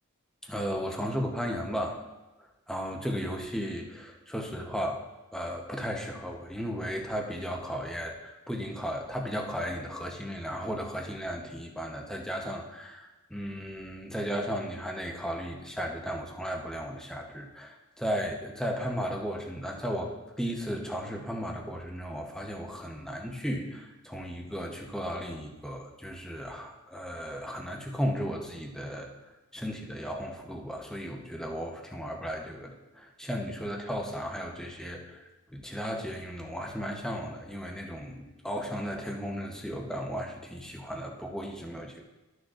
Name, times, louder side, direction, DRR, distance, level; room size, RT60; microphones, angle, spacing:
voice 1, 0.4-2.0 2.7-5.0 5.3-29.1 29.5-42.0, equal, 5° left, 1 dB, 0.8 m, -35 dB
13.5 x 6.3 x 2.5 m, 1.1 s
head